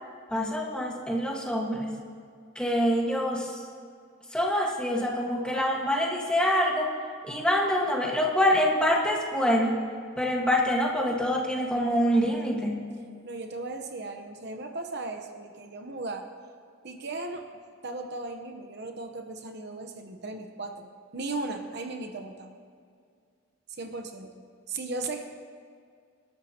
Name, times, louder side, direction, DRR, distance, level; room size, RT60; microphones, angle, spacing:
voice 1, 0.3-1.9 2.5-3.5 4.3-6.9 7.2-9.8 10.2-12.9, equal, 5° left, -2 dB, 1.6 m, -25 dB
voice 2, 13.2-16.3 16.8-17.5 17.8-22.5 23.7-24.3 24.7-25.2, right 3 dB, 55° right, 5 dB, 1.0 m, -36 dB
26.0 x 12.5 x 3.0 m, 2.2 s
head